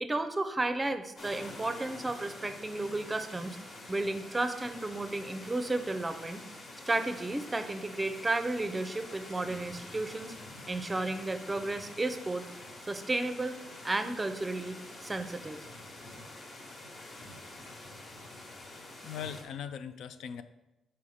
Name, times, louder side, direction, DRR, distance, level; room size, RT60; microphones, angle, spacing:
voice 1, 0.0-3.6 3.9-6.4 6.9-10.3 10.7-12.4 12.9-13.6 13.8-15.7, right 2 dB, 20° right, 8 dB, 0.5 m, -33 dB
sound 1, 1.2-19.4, left 2 dB, 45° left, 1.5 m, -47 dB
voice 2, 19.0-20.4, left 8 dB, 75° left, 11 dB, 0.4 m, -40 dB
5.6 x 4.4 x 4.9 m, 0.98 s
cardioid pair, 90°, 0 cm